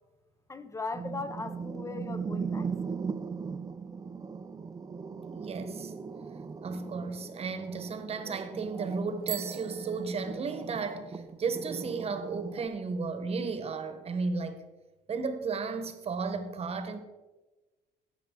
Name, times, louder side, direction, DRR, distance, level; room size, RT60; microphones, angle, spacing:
voice 1, 0.5-2.7, left 3 dB, 15° left, 0.7 m, -38 dB
sound 1, 0.9-12.7, right 5 dB, 20° right, 0.5 m, -39 dB
voice 2, 5.3-5.9 6.6-14.6 15.1-17.0, right 4 dB, 35° right, 1.1 m, -34 dB
Bicycle bell, 9.2-10.9, right 11 dB, 55° right, 0.8 m, -41 dB
16.5 x 5.8 x 3.7 m
cardioid pair, 110°, 17 cm